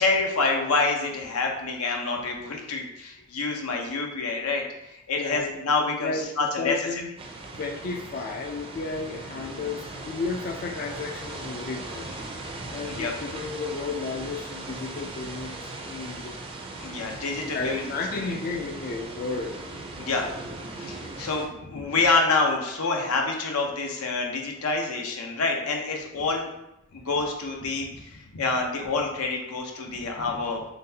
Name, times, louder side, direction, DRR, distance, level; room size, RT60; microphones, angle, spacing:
voice 1, 0.0-4.6 4.9-7.0 12.9-13.1 16.8-17.8 18.1-18.3 20.0-20.3 20.8-26.5 26.9-30.6, left 3 dB, 85° left, 1 dB, 0.7 m, -27 dB
voice 2, 5.2-7.1 7.6-12.4 12.7-16.4 17.5-19.6, left 4 dB, 40° left, 1 dB, 0.3 m, -33 dB
sound 1, 7.2-21.5, right 2 dB, 25° right, 0.4 m, -39 dB
3.9 x 3.3 x 2.7 m, 0.86 s
head